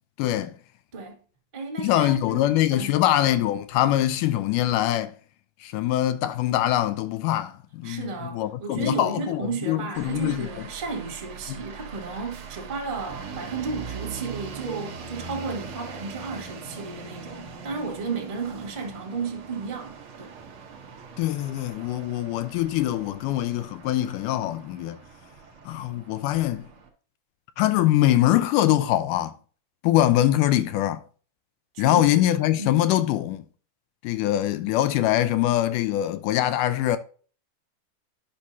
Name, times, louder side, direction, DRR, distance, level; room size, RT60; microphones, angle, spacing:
voice 1, 0.2-0.5 1.8-5.1 5.6-10.5 11.5-11.6 21.2-25.0 25.7-26.7 27.6-29.3 29.8-31.0 31.8-33.5 34.0-37.0, left 13 dB, 80° left, 2.1 m, -23 dB
voice 2, 1.5-3.0 7.8-20.3 31.7-32.2 32.6-32.8, right 4 dB, 25° right, 1.1 m, -33 dB
sound 1, 9.9-26.9, right 5 dB, 60° right, 1.4 m, -41 dB
10.0 x 6.0 x 2.7 m
omnidirectional pair, 3.8 m